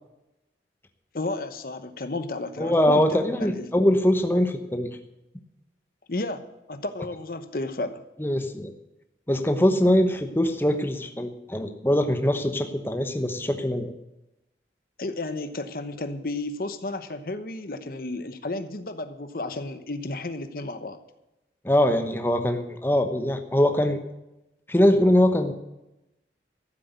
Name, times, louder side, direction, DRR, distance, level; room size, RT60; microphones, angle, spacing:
voice 1, 1.1-3.7 6.1-6.4 6.7-8.0 15.0-21.0, left 2 dB, 55° left, 10 dB, 1.0 m, -32 dB
voice 2, 2.6-4.9 8.2-8.7 9.3-13.9 21.6-24.0 24.7-25.5, left 1 dB, 15° left, 6 dB, 1.0 m, -22 dB
14.0 x 7.9 x 8.2 m, 0.91 s
head